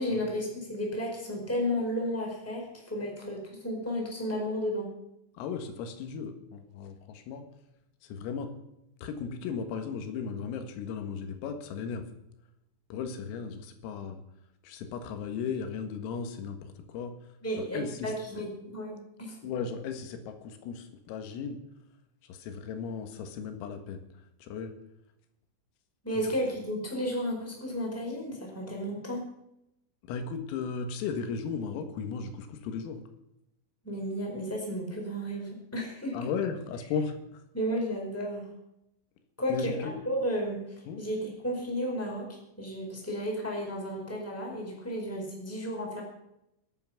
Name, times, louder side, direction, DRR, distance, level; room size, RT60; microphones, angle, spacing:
voice 1, 0.0-4.9 17.4-19.4 26.0-29.3 33.8-36.3 37.5-38.5 39.4-40.6 41.0-42.3 42.6-46.0, equal, 5° left, -1 dB, 3.7 m, -33 dB
voice 2, 5.4-7.5 8.0-8.6 9.0-12.1 12.9-14.2 14.6-17.2 17.5-18.4 19.4-21.6 22.2-24.0 24.4-24.7 26.2-26.3 30.0-33.1 36.1-37.4 39.5-40.0 40.9-41.0, left 6 dB, 90° left, 7 dB, 4.2 m, -36 dB
24.5 x 8.7 x 5.8 m, 0.84 s
omnidirectional pair, 5.9 m